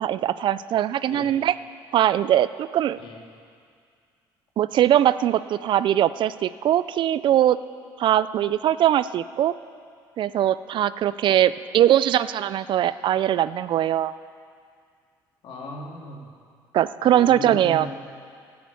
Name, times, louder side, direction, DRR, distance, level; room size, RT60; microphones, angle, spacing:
voice 1, 0.0-1.6 1.9-3.0 4.6-7.6 8.0-9.5 10.2-14.1 16.7-17.9, right 11 dB, 55° right, 16 dB, 0.4 m, -21 dB
voice 2, 15.4-16.3 17.0-17.9, left 2 dB, 60° left, -1 dB, 2.8 m, -37 dB
14.0 x 9.4 x 8.3 m, 2.2 s
supercardioid pair, 80°, 10 cm